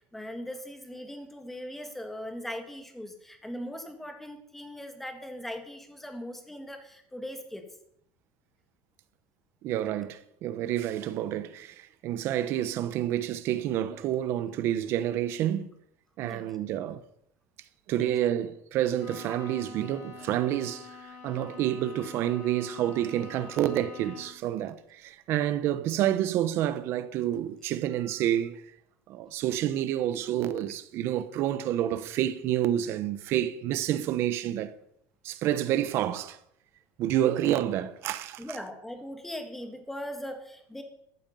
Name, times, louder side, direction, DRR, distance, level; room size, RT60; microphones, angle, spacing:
voice 1, 0.1-7.7 16.2-16.5 17.9-18.1 38.4-40.8, equal, 5° left, 1.7 m, -40 dB
voice 2, 9.6-15.7 16.2-17.0 17.9-28.6 29.1-34.7 35.2-36.4 37.0-38.4, right 12 dB, 40° right, 1.0 m, -29 dB
Bowed string instrument, 19.0-24.5, left 5 dB, 45° left, 4.1 m, -46 dB
14.0 x 13.0 x 5.5 m
cardioid pair, 170°, 6 cm